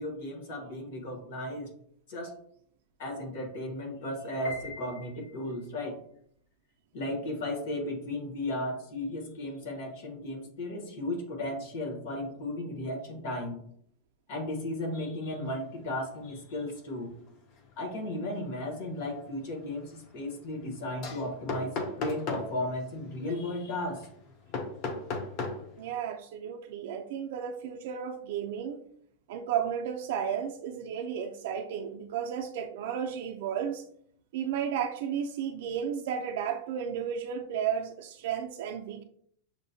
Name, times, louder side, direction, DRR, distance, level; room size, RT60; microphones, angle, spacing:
voice 1, 0.0-1.7 2.1-2.3 3.0-6.0 6.9-13.6 14.3-17.1 17.8-24.1, left 1 dB, 50° left, 2 dB, 1.1 m, -35 dB
Piano, 4.4-5.7, left 4 dB, 65° left, 1.1 m, -43 dB
sound 1, 15.4-15.7 16.1-16.4 16.8-25.9, left 3 dB, 30° left, 0.5 m, -39 dB
voice 2, 25.8-28.8 29.3-33.8 34.3-39.0, right 8 dB, 50° right, 4 dB, 0.4 m, -33 dB
6.3 x 2.1 x 2.7 m, 0.65 s
supercardioid pair, 180°, 0 cm